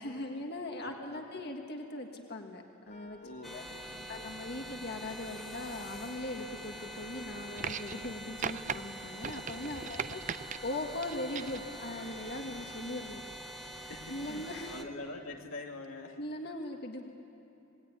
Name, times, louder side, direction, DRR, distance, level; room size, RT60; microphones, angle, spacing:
voice 1, 0.0-3.2 3.5-3.6 4.1-13.2 14.1-14.7 16.2-17.1, left 1 dB, 55° left, 3 dB, 1.7 m, -40 dB
voice 2, 0.8-1.2 3.2-4.2 9.7-10.0 13.9-16.2, left 2 dB, 90° left, 1 dB, 2.7 m, -45 dB
Wind instrument woodwind instrument, 2.9-13.3, left 4 dB, 30° left, 1.0 m, -57 dB
sound 1, 3.4-14.8, right 1 dB, ahead, 1.7 m, -45 dB
sound 2, 7.6-8.1 8.4-8.8 9.2-10.6 11.0-11.6 12.7-12.8, right 7 dB, 40° right, 0.5 m, -38 dB
27.0 x 20.5 x 9.6 m, 2.9 s
head